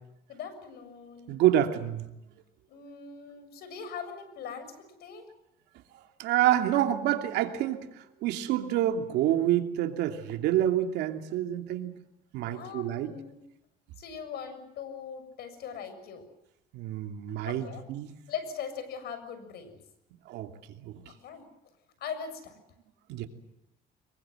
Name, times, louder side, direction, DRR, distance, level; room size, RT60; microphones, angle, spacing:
voice 1, 0.3-1.4 2.7-5.3 12.4-13.4 14.0-16.3 17.4-17.8 18.3-19.8 21.1-21.5 22.0-22.6, left 7 dB, 70° left, 10 dB, 6.8 m, -41 dB
voice 2, 1.3-2.0 6.2-7.8 8.2-11.9 12.3-13.1 16.7-18.1 20.3-20.5 23.1-23.3, right 12 dB, 85° right, 6 dB, 2.9 m, -27 dB
25.0 x 22.5 x 7.9 m, 0.83 s
cardioid pair, 110°, 17 cm